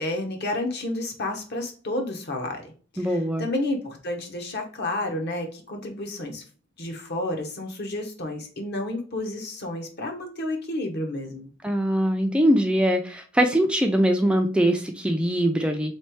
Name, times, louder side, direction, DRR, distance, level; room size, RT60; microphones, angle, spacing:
voice 1, 0.0-2.7 2.9-6.4 6.8-11.5, left 1 dB, 55° left, 3 dB, 1.0 m, -31 dB
voice 2, 3.0-3.5 11.6-15.9, equal, 5° right, 4 dB, 0.3 m, -22 dB
3.4 x 3.2 x 4.5 m, 0.40 s
head